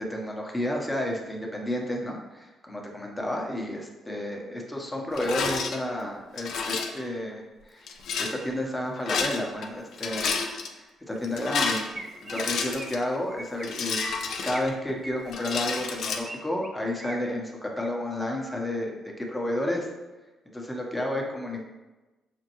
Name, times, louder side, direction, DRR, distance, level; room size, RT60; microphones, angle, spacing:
voice 1, 0.1-10.4 10.8-11.9 12.2-14.2 14.4-19.9 20.5-21.6, left 1 dB, 10° left, -1 dB, 0.9 m, -31 dB
Rattle, 5.1-5.8 6.4-7.0 7.9-8.3 9.0-9.7 9.9-10.7 11.2-13.0 13.6-14.9 15.3-16.2, left 5 dB, 70° left, 0.4 m, -30 dB
Chirp tweet, 11.9-12.4 12.7-13.0 13.3-13.7 14.0-14.7 15.0-16.4 16.6-17.2 17.6-17.9 18.3-18.7, right 2 dB, 30° right, 0.5 m, -41 dB
5.1 x 2.2 x 3.0 m, 1.1 s
hypercardioid pair, 50°, 0 cm